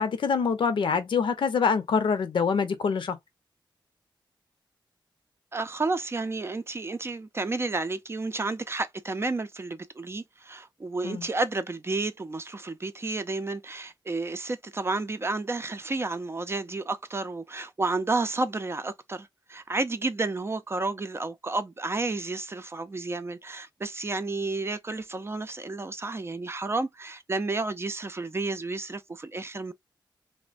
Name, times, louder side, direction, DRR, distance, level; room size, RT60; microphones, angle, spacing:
voice 1, 0.0-3.2 11.0-11.3, left 5 dB, 80° left, 0.7 m, -25 dB
voice 2, 5.5-29.7, right 3 dB, 30° right, 0.5 m, -31 dB
3.2 x 2.1 x 2.4 m
wide cardioid pair, 85°, 8 cm